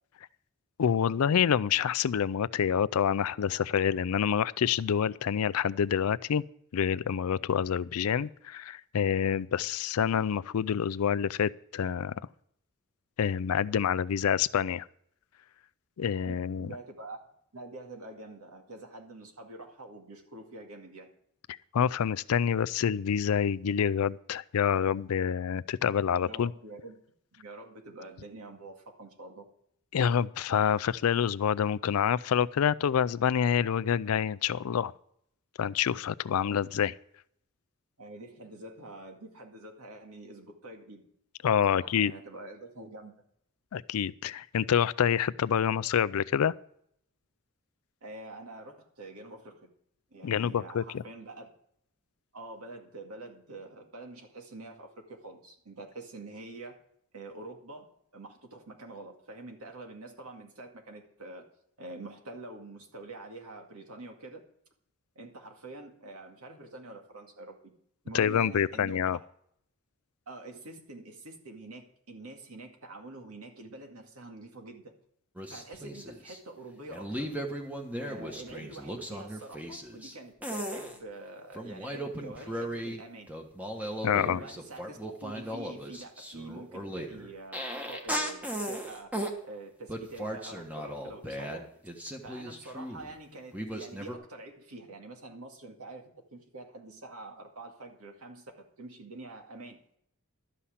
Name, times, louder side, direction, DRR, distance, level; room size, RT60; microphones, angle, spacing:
voice 1, 0.8-6.4 6.7-12.1 13.2-14.9 16.0-16.7 21.5-26.5 29.9-34.9 35.6-36.9 41.4-42.1 43.7-46.5 50.2-51.0 68.1-69.2 84.0-84.4, left 8 dB, 75° left, 0.4 m, -27 dB
voice 2, 16.2-17.2 17.5-21.1 26.2-27.0 27.3-29.5 38.0-41.0 41.7-43.1 48.0-49.7 50.1-51.5 52.3-56.8 57.1-61.5 61.8-64.4 65.2-67.7 68.0-69.0 70.3-74.9 75.5-77.3 78.0-83.3 84.0-89.1 89.4-91.7 92.2-99.8, right 2 dB, 80° right, 2.1 m, -46 dB
sound 1, 75.4-76.4 76.9-80.1 80.4-81.0 81.6-83.0 83.3-89.4 89.9-93.1 93.5-94.1, equal, 5° right, 1.3 m, -37 dB
12.5 x 5.7 x 8.4 m
head